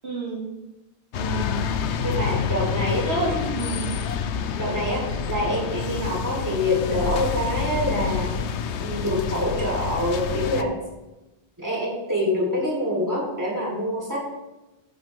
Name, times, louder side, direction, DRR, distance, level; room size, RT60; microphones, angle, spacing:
voice 1, 0.0-0.5 1.2-1.7 3.0-4.0, right 2 dB, 70° right, -3 dB, 2.7 m, -29 dB
sound 1, 1.1-10.6, left 7 dB, 90° left, 1.0 m, -28 dB
voice 2, 2.0-3.1 4.6-8.3 8.7-10.8 11.6-14.3, left 1 dB, 15° right, -4 dB, 3.8 m, -26 dB
14.0 x 9.2 x 3.6 m, 1.0 s
omnidirectional pair, 1.1 m